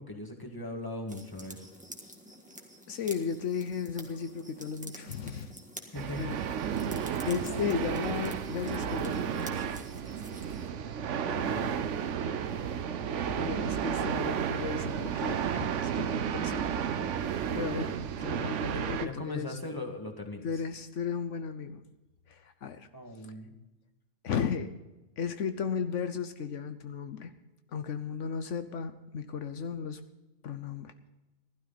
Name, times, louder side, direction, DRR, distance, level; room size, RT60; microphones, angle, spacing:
voice 1, 0.0-1.6 5.9-6.3 11.5-11.7 19.0-20.6 22.9-23.5, left 2 dB, 20° left, 3 dB, 1.9 m, -39 dB
sound 1, 1.1-10.7, equal, 5° right, 1.7 m, -49 dB
voice 2, 2.9-5.5 6.2-6.4 7.2-9.7 11.3-11.5 13.4-17.0 17.3-19.6 20.4-21.8 22.3-22.9 24.2-24.7 25.2-27.3 27.7-30.0 30.4-30.9, left 6 dB, 80° left, 9 dB, 1.2 m, -35 dB
sound 2, 5.9-19.1, right 8 dB, 80° right, 1.1 m, -32 dB
16.0 x 12.5 x 4.1 m, 1.0 s
omnidirectional pair, 1.2 m